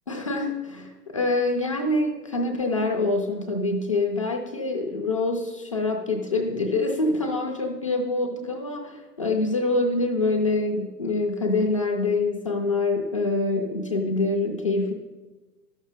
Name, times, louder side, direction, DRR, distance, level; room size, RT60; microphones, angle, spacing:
voice 1, 0.1-14.9, left 2 dB, 25° left, 1 dB, 0.4 m, -25 dB
12.5 x 6.1 x 4.1 m, 1.2 s
figure-of-eight pair, 115°, 50 cm